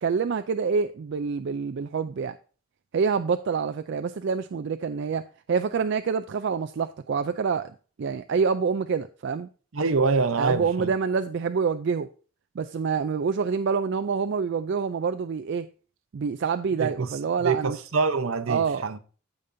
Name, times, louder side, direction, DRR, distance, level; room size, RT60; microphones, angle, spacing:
voice 1, 0.0-2.4 2.9-7.7 8.0-9.5 10.4-12.1 12.6-15.7 16.1-17.8 18.5-19.0, right 5 dB, 55° right, 0.3 m, -27 dB
voice 2, 9.7-10.9 16.8-17.1 17.4-19.0, right 4 dB, 75° right, 0.7 m, -25 dB
15.0 x 5.2 x 2.6 m
head